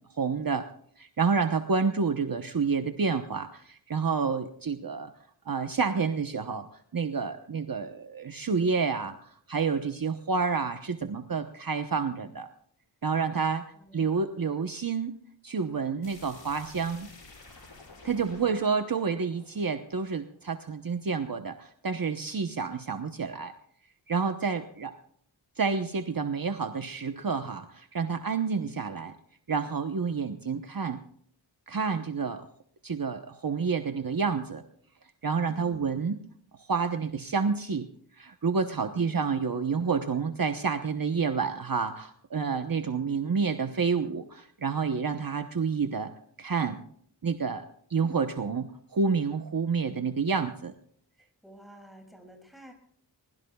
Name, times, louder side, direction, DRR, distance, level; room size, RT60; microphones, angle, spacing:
voice 1, 0.1-0.7 1.0-5.1 5.5-12.5 13.0-15.1 15.4-17.1 18.0-23.5 24.1-24.9 25.6-29.1 29.5-31.0 31.7-32.5 32.8-34.6 35.2-36.2 36.5-37.9 38.2-46.1 46.4-46.8 47.2-47.6 47.9-50.7, right 5 dB, 50° right, 7 dB, 1.0 m, -29 dB
voice 2, 13.7-14.7 18.2-19.1 35.5-36.1 38.8-39.5 51.2-52.7, equal, ahead, 2 dB, 6.5 m, -52 dB
sound 1, 16.0-20.7, left 3 dB, 80° left, 5.9 m, -51 dB
22.0 x 22.0 x 2.3 m, 0.63 s
wide cardioid pair, 60°, 43 cm